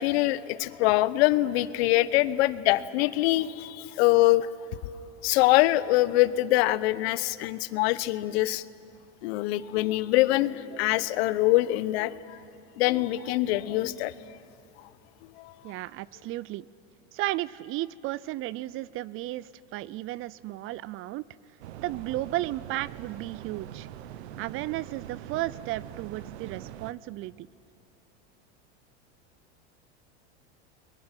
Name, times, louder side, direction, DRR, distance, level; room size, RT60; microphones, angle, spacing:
voice 1, 0.0-4.5 5.2-8.6 9.2-12.4 12.8-14.1 15.4-15.5, left 17 dB, 70° left, 16 dB, 0.9 m, -24 dB
voice 2, 15.6-16.7 17.1-21.3 21.8-23.9 24.4-27.5, right 16 dB, 40° right, 21 dB, 0.5 m, -34 dB
sound 1, 21.6-26.9, right 11 dB, 75° right, 1.0 m, -43 dB
30.0 x 22.0 x 6.0 m, 2.7 s
supercardioid pair, 110°, 33 cm